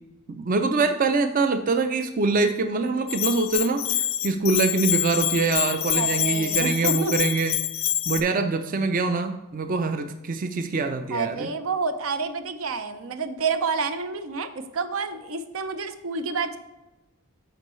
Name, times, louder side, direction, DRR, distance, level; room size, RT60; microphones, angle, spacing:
voice 1, 0.3-7.6 8.1-11.5, right 3 dB, 40° right, 7 dB, 0.4 m, -24 dB
Bell, 3.1-8.2, left 13 dB, 65° left, 0.5 m, -26 dB
voice 2, 5.9-7.2 11.1-16.6, right 4 dB, 80° right, 9 dB, 0.6 m, -29 dB
13.0 x 4.5 x 3.1 m, 1.0 s
head